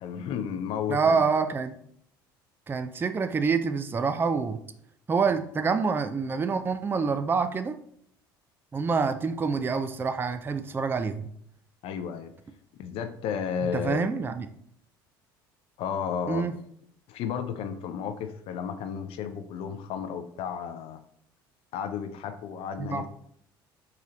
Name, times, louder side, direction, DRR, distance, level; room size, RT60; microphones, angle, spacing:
voice 1, 0.0-1.2 11.8-12.3 12.8-14.1 15.8-16.5 17.1-21.0 21.7-23.1, left 7 dB, 55° left, 8 dB, 0.4 m, -33 dB
voice 2, 0.9-1.7 2.7-4.6 5.1-7.8 8.7-11.3 13.7-14.5 16.3-16.5 22.8-23.0, right 5 dB, 20° right, 10 dB, 0.3 m, -26 dB
3.8 x 3.0 x 2.8 m, 0.67 s
hypercardioid pair, 65°, 12 cm